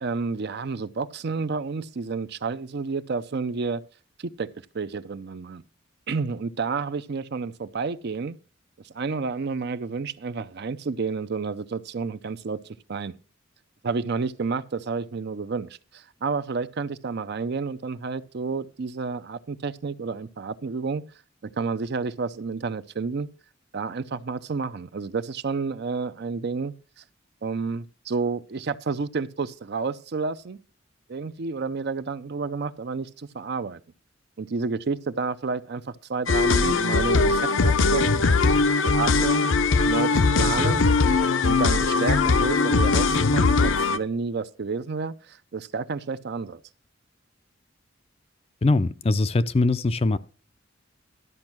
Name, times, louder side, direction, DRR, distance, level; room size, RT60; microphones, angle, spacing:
voice 1, 0.0-3.8 4.2-4.5 4.7-5.6 6.1-8.4 8.8-12.6 12.9-13.1 13.8-21.0 21.6-23.3 23.7-27.0 27.4-30.6 31.1-33.8 34.4-38.2 38.8-39.5 39.9-40.9 41.4-46.6, right 4 dB, 55° right, 0.5 m, -30 dB
sound 1, 36.3-44.0, left 4 dB, 70° left, 0.6 m, -20 dB
voice 2, 48.6-50.2, left 2 dB, 30° left, 0.4 m, -22 dB
12.5 x 5.3 x 6.0 m
head